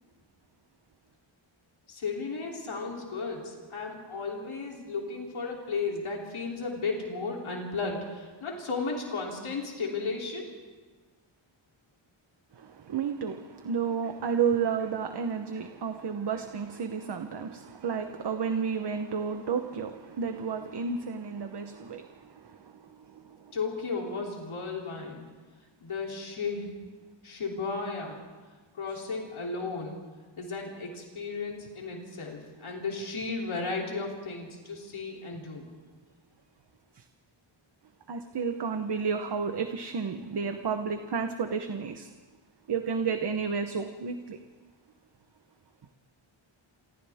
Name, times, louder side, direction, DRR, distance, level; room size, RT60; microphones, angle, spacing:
voice 1, 1.9-10.5 23.5-25.2 25.8-26.7 27.2-28.2 28.7-30.0 30.4-35.7, left 4 dB, 75° left, 3.3 m, -34 dB
voice 2, 12.5-23.6 36.9-37.0 38.1-42.1 42.7-44.4, right 6 dB, 55° right, 1.0 m, -32 dB
28.5 x 27.5 x 3.6 m
wide cardioid pair, 170°, 49 cm